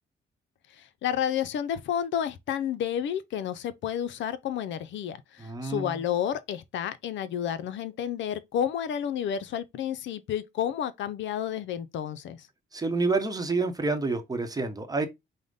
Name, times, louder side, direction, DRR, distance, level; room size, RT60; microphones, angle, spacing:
voice 1, 0.7-12.5, left 9 dB, 70° left, 0.5 m, -31 dB
voice 2, 5.4-6.0 12.7-15.1, right 3 dB, 20° right, 0.9 m, -28 dB
4.9 x 2.1 x 3.8 m
cardioid pair, 90°, 20 cm